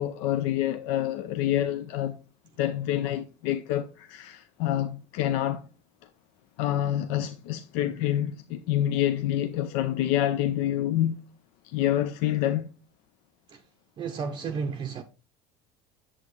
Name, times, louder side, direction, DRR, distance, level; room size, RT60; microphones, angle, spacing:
voice 1, 0.0-2.2 2.6-5.6 6.6-11.2 11.7-12.7, left 12 dB, 80° left, 0.6 m, -27 dB
voice 2, 14.0-15.0, right 5 dB, 30° right, 0.6 m, -32 dB
8.7 x 7.4 x 3.2 m
cardioid pair, 155°, 16 cm